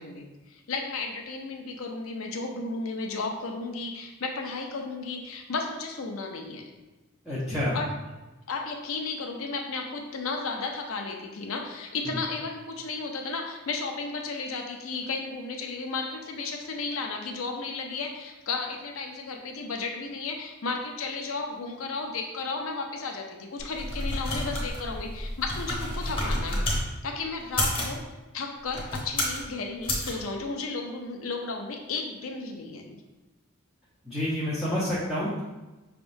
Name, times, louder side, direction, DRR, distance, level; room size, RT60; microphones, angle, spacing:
voice 1, 0.0-6.7 7.7-7.9 8.5-26.7 27.0-28.0 28.3-33.0, left 3 dB, 75° left, 2 dB, 0.6 m, -34 dB
voice 2, 7.3-7.8 34.1-35.4, left 1 dB, ahead, -10 dB, 0.8 m, -28 dB
sound 1, 23.6-26.8 27.4-28.0 28.6-29.4 29.8-30.1, left 1 dB, 25° left, 1.1 m, -30 dB
5.7 x 3.5 x 2.6 m, 1.1 s
head